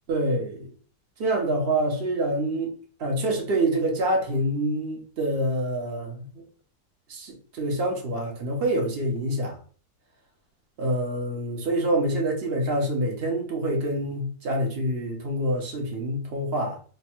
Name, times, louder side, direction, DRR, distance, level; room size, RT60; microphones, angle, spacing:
voice 1, 0.1-0.7 1.2-2.7 3.0-6.4 7.1-9.6 10.8-16.8, right 1 dB, 45° right, 0.8 m, -26 dB
3.3 x 2.3 x 4.3 m
omnidirectional pair, 2.0 m